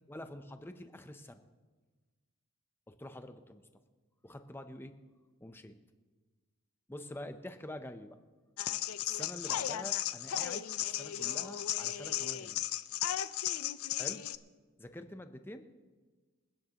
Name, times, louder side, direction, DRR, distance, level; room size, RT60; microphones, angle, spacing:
voice 1, 0.0-1.4 2.9-3.6 4.2-4.9 5.4-5.7 6.9-8.2 9.0-12.6 14.0-14.2 14.8-15.6, left 1 dB, 10° left, 8 dB, 0.6 m, -46 dB
sound 1, 8.6-14.4, left 12 dB, 80° left, 0.5 m, -35 dB
27.5 x 9.3 x 2.9 m, 1.4 s
head